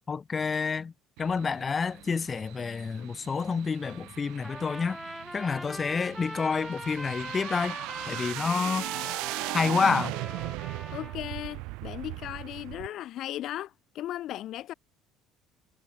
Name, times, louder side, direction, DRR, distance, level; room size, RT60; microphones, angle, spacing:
voice 1, 0.1-0.9 1.2-5.0 5.3-7.8 8.1-8.9 9.5-10.2, left 5 dB, 25° left, 0.8 m, -28 dB
sound 1, 1.2-12.9, right 25 dB, 80° right, 0.4 m, -38 dB
Piano, 3.8-5.4 7.8-7.9, right 13 dB, 55° right, 5.5 m, -59 dB
Trumpet, 4.4-11.2, equal, ahead, 2.1 m, -41 dB
voice 2, 10.9-14.7, left 13 dB, 55° left, 0.7 m, -37 dB
cardioid pair, 135°, 0 cm